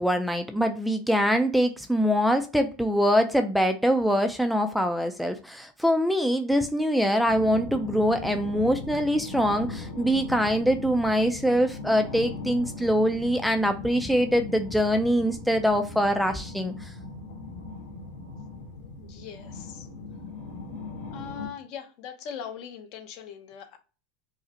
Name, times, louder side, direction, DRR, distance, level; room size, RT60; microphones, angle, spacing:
voice 1, 0.0-16.9, equal, ahead, 0.4 m, -24 dB
sound 1, 7.3-21.5, left 3 dB, 85° left, 2.0 m, -39 dB
voice 2, 19.0-19.9 21.1-23.8, left 8 dB, 55° left, 0.8 m, -40 dB
4.7 x 2.1 x 2.8 m
supercardioid pair, 125°, 0 cm